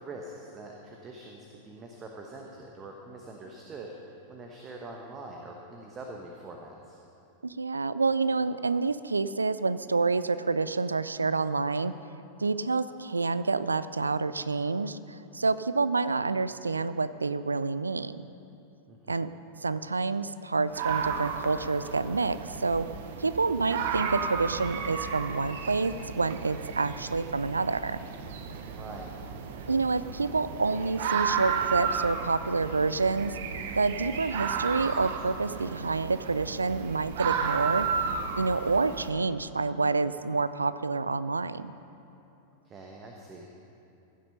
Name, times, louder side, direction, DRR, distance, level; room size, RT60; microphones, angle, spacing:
voice 1, 0.0-3.9 4.3-7.0 18.9-19.3 28.7-29.1 42.6-43.5, right 2 dB, 25° right, 1 dB, 1.0 m, -44 dB
voice 2, 7.4-11.9 12.4-18.2 19.1-19.3 19.6-22.9 23.2-28.0 29.7-33.3 33.8-37.9 38.4-41.7, right 4 dB, 80° right, 15 dB, 0.3 m, -28 dB
sound 1, 20.7-39.1, right 6 dB, 55° right, 0.8 m, -33 dB
16.0 x 7.5 x 5.5 m, 2.8 s
figure-of-eight pair, 90°, 0 cm